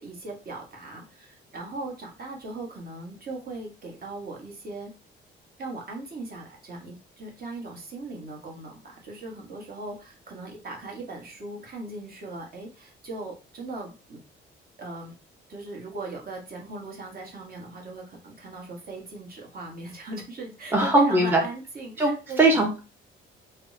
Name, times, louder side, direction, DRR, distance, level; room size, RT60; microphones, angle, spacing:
voice 1, 0.0-4.9 5.6-14.2 14.8-15.1 15.5-22.5, right 2 dB, 50° right, 0 dB, 1.1 m, -38 dB
voice 2, 20.7-21.4 22.0-22.1 22.4-22.8, right 2 dB, 10° right, 1 dB, 0.6 m, -20 dB
3.5 x 2.1 x 2.6 m, 0.32 s
cardioid pair, 90°, 20 cm